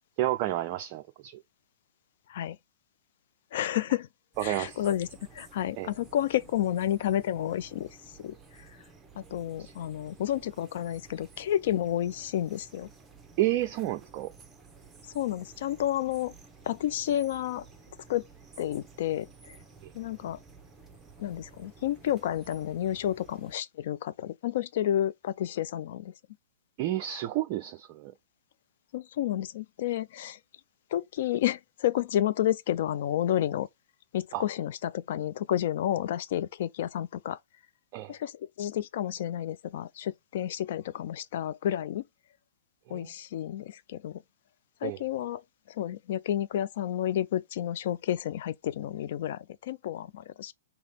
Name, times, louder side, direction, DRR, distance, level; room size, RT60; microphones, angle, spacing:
voice 1, 0.2-1.4 4.4-4.8 5.8-5.9 9.6-9.7 13.4-14.3 26.8-28.1 34.3-34.4 37.9-38.1 42.9-43.1 44.8-45.0, right 14 dB, 40° right, 0.3 m, -30 dB
voice 2, 3.5-4.1 4.4-5.1 5.3-7.9 8.2-8.3 9.2-12.9 15.1-16.3 16.7-17.7 18.1-18.2 18.6-19.6 19.9-20.4 21.2-26.1 28.9-30.4 30.9-33.7 34.1-37.4 38.1-42.0 42.9-44.2 44.8-45.4 45.7-50.5, left 11 dB, 55° left, 0.4 m, -30 dB
sound 1, 4.3-23.6, right 4 dB, 10° right, 0.8 m, -53 dB
3.2 x 2.8 x 4.2 m
figure-of-eight pair, 110°, 0 cm